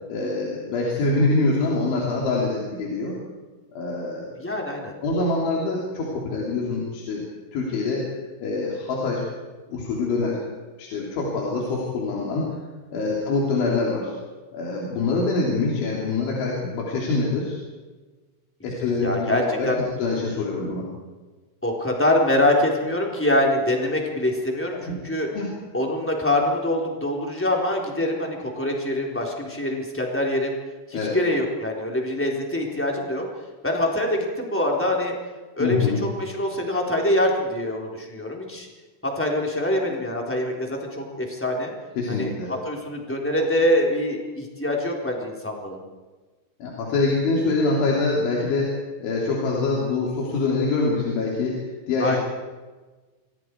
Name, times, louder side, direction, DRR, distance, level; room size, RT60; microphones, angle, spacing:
voice 1, 0.1-3.1 3.7-4.3 5.0-7.2 7.5-8.1 8.4-9.2 9.7-10.5 10.8-12.5 12.9-14.1 14.5-17.6 18.6-19.7 20.0-20.9 24.9-25.0 25.3-25.6 30.9-31.2 35.6-36.0 42.0-42.5 46.6-48.8 49.0-51.6 51.9-52.2, left 3 dB, 75° left, -4 dB, 5.8 m, -25 dB
voice 2, 4.4-4.9 13.1-13.2 19.0-19.8 21.6-25.3 25.7-30.6 30.9-33.2 33.6-35.1 35.6-38.7 39.0-41.7 42.1-45.8 52.0-52.2, left 1 dB, 5° left, -1 dB, 3.1 m, -24 dB
28.5 x 24.5 x 4.7 m, 1.3 s
omnidirectional pair, 5.5 m